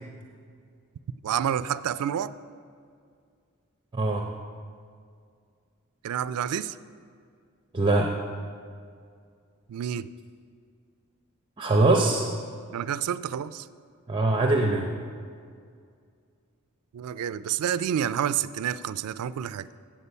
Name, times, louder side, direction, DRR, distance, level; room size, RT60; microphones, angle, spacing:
voice 1, 1.2-2.3 6.0-6.8 9.7-10.1 12.7-13.7 16.9-19.7, right 9 dB, 80° right, 15 dB, 0.3 m, -29 dB
voice 2, 3.9-4.3 7.7-8.1 11.6-12.3 14.1-14.9, right 2 dB, 20° right, 1 dB, 0.6 m, -22 dB
8.2 x 7.5 x 5.5 m, 2.2 s
head